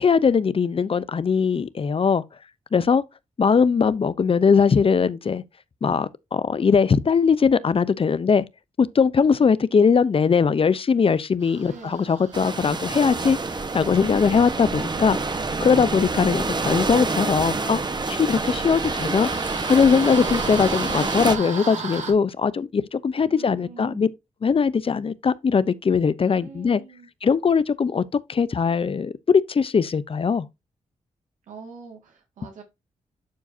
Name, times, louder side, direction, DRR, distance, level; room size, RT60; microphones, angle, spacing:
voice 1, 0.0-2.2 2.7-3.0 3.4-5.4 5.8-8.4 8.8-13.4 13.7-15.2 15.6-17.8 18.1-19.3 19.6-24.1 24.4-26.8 27.2-28.0 28.3-30.5, left 6 dB, 45° left, 0.7 m, -20 dB
sound 1, 11.4-22.1, right 5 dB, 70° right, 2.2 m, -38 dB
voice 2, 11.6-12.1 23.3-24.1 26.3-27.1 31.5-32.6, right 5 dB, 90° right, 2.1 m, -43 dB
sound 2, 12.3-21.4, right 3 dB, 35° right, 1.2 m, -27 dB
11.5 x 4.7 x 2.7 m
cardioid pair, 60°, 13 cm